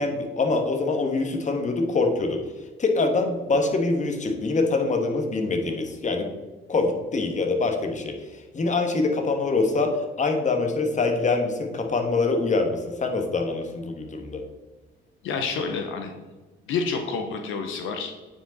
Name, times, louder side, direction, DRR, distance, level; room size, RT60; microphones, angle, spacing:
voice 1, 0.0-2.4 2.8-6.3 6.7-9.9 10.2-14.4, left 3 dB, 40° left, 4 dB, 1.3 m, -24 dB
voice 2, 15.2-16.2 16.7-18.1, left 5 dB, 85° left, 5 dB, 0.8 m, -28 dB
8.9 x 5.0 x 4.0 m, 1.2 s
cardioid pair, 90°, 20 cm